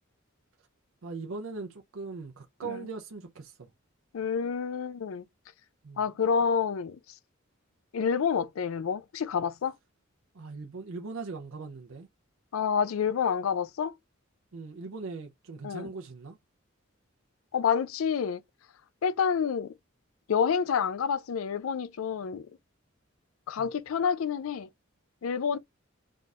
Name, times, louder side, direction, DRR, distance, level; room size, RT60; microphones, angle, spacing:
voice 1, 1.0-3.7 5.8-6.0 10.3-12.1 14.5-16.4 23.6-23.7, right 4 dB, 80° right, 0.6 m, -40 dB
voice 2, 4.1-5.2 6.0-7.0 7.9-9.7 12.5-13.9 15.6-15.9 17.5-18.4 19.0-19.7 20.3-22.5 23.5-24.7 25.2-25.6, left 6 dB, 85° left, 0.4 m, -28 dB
3.7 x 2.4 x 4.1 m
head